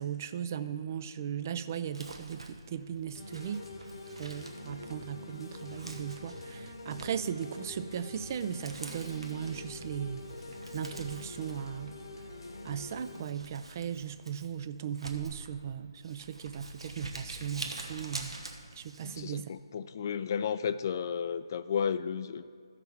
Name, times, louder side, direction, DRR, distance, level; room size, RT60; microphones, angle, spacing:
voice 1, 0.0-3.6 4.2-10.2 10.7-12.0 12.6-18.4 18.7-19.5, right 8 dB, 35° right, 12 dB, 0.4 m, -37 dB
Crumpling crinkling, 1.8-19.2, right 2 dB, 80° right, 1.2 m, -47 dB
sound 1, 3.1-13.2, left 2 dB, 65° left, 1.2 m, -45 dB
voice 2, 19.0-22.5, left 7 dB, 40° left, 13 dB, 0.3 m, -33 dB
14.0 x 5.9 x 4.4 m, 2.1 s
figure-of-eight pair, 150°, 3 cm